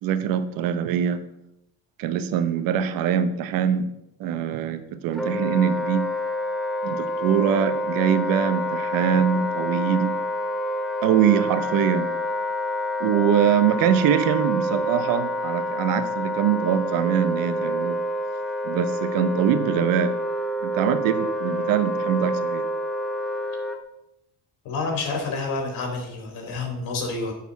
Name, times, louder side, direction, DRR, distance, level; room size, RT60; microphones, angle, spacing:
voice 1, 0.0-1.2 2.0-3.9 4.2-6.0 6.8-10.2 11.0-12.1 13.0-18.0 18.6-20.1 20.6-22.6, right 8 dB, 80° right, 11 dB, 0.9 m, -23 dB
Wind instrument woodwind instrument, 5.1-23.8, equal, ahead, 1.2 m, -28 dB
voice 2, 24.6-27.3, left 3 dB, 75° left, 2 dB, 2.9 m, -28 dB
9.6 x 4.3 x 7.2 m, 0.82 s
supercardioid pair, 90°, 34 cm